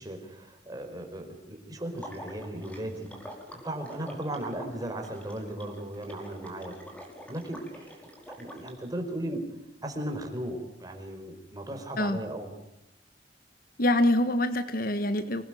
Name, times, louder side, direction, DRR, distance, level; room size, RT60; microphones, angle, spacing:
voice 1, 0.0-3.1 3.6-6.7 7.3-8.0 8.4-9.4 9.8-12.5, right 1 dB, 20° right, 4 dB, 4.9 m, -36 dB
Water / Liquid, 1.9-8.7, equal, 10° left, 5.0 m, -46 dB
voice 2, 13.8-15.4, left 1 dB, 55° left, 11 dB, 1.5 m, -25 dB
26.0 x 19.5 x 9.3 m, 0.86 s
head